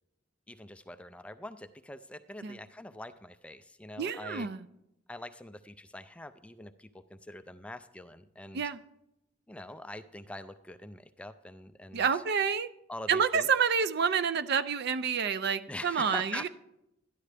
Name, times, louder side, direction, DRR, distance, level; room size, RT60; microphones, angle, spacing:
voice 1, 0.5-4.5 5.1-8.6 9.5-12.1 12.9-13.5 15.7-16.5, left 1 dB, 5° left, 11 dB, 0.3 m, -44 dB
voice 2, 4.0-4.7 8.5-8.8 11.9-12.7 13.1-16.5, right 6 dB, 55° right, 14 dB, 0.4 m, -28 dB
13.0 x 10.5 x 3.3 m, 0.85 s
head